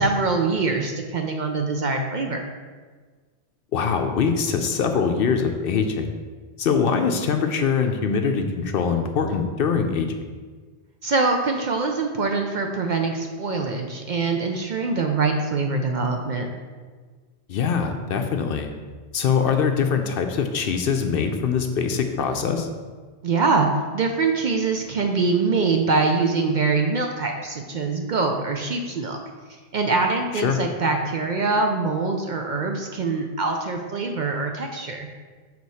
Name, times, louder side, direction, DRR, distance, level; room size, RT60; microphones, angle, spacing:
voice 1, 0.0-2.4 11.0-16.5 23.2-23.7 23.9-29.2 29.7-35.1, right 4 dB, 55° right, 3 dB, 0.6 m, -24 dB
voice 2, 3.7-6.1 6.6-10.1 17.5-18.7 19.1-22.7 30.3-30.6, left 6 dB, 65° left, 5 dB, 0.7 m, -23 dB
6.5 x 4.3 x 4.1 m, 1.5 s
omnidirectional pair, 1.1 m